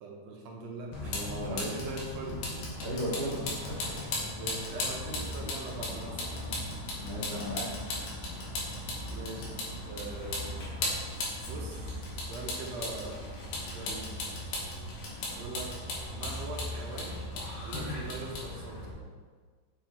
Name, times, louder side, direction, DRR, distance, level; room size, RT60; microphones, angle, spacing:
voice 1, 0.0-1.2 1.4-2.5 3.3-3.4 4.3-6.4 9.0-9.5 9.9-10.6 11.4-11.9 12.2-13.3 13.7-14.2 15.3-15.8 16.1-17.3 17.6-19.1, right 3 dB, 70° right, 0 dB, 1.7 m, -41 dB
Vehicle, 0.9-18.9, left 2 dB, 85° left, 2.7 m, -37 dB
voice 2, 1.0-1.7 2.8-3.4 3.6-4.0 7.0-7.7, equal, 55° right, -8 dB, 2.5 m, -36 dB
7.2 x 3.8 x 4.4 m, 1.6 s
omnidirectional pair, 3.5 m